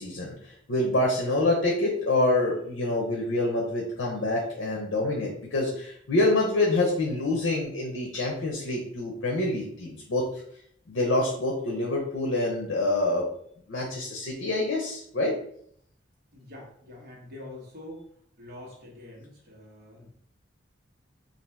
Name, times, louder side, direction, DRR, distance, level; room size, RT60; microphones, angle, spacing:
voice 1, 0.0-10.3 10.9-13.3 13.7-15.3, left 2 dB, 75° left, -1 dB, 0.7 m, -26 dB
voice 2, 16.3-18.1 18.4-20.1, left 1 dB, 55° right, -3 dB, 1.1 m, -45 dB
2.7 x 2.5 x 3.4 m, 0.66 s
head